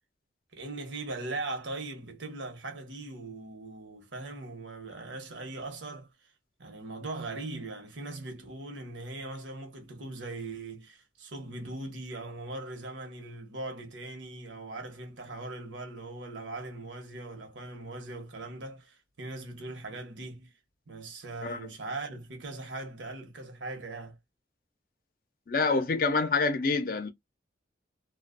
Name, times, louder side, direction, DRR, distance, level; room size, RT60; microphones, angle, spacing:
voice 1, 0.5-6.1 6.6-20.5 20.9-24.2, right 2 dB, 85° right, 1.0 m, -40 dB
voice 2, 25.5-27.1, left 4 dB, 50° left, 0.5 m, -27 dB
2.5 x 2.3 x 2.5 m
head